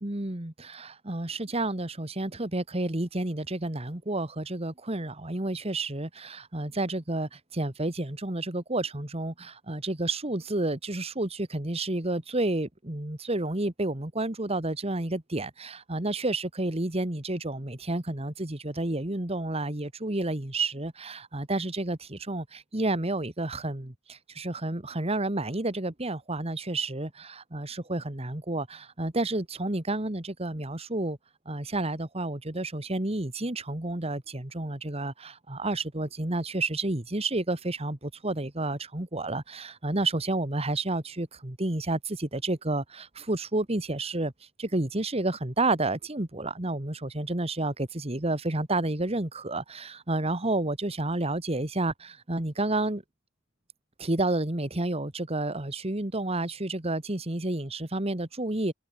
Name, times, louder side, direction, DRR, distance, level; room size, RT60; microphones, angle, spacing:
voice 1, 0.0-31.2 31.4-44.3 44.6-53.0 54.0-58.7, right 2 dB, 30° right, 1.7 m, -30 dB
head